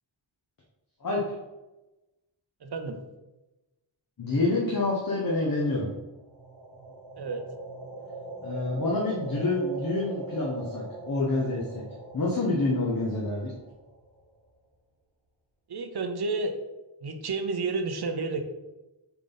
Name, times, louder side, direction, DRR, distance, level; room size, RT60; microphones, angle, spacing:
voice 1, 2.6-3.0 7.2-7.4 15.7-16.6 17.0-18.4, right 3 dB, 55° right, 7 dB, 0.8 m, -30 dB
voice 2, 4.2-5.9 8.4-11.8 12.1-13.5, left 2 dB, 45° left, -4 dB, 1.1 m, -27 dB
sound 1, 6.2-14.2, right 2 dB, 70° right, 1.4 m, -41 dB
7.0 x 3.8 x 4.0 m, 1.0 s
wide cardioid pair, 105°, 48 cm